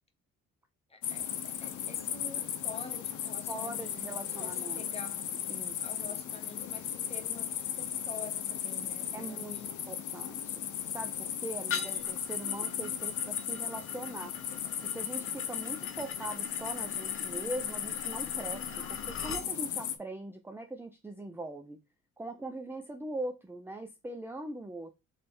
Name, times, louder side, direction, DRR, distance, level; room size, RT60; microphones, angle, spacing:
voice 1, 0.9-5.3 5.8-9.8 15.6-15.9, left 4 dB, 20° left, 1.1 m, -48 dB
sound 1, 1.0-20.0, left 9 dB, 75° left, 0.7 m, -36 dB
voice 2, 3.5-4.8 5.5-5.9 9.1-9.6 9.9-10.6 10.9-14.4 14.8-21.8 22.2-24.9, right 2 dB, 10° right, 0.5 m, -41 dB
sound 2, 11.7-19.5, left 6 dB, 45° left, 1.0 m, -43 dB
3.3 x 3.3 x 4.2 m
cardioid pair, 90°, 30 cm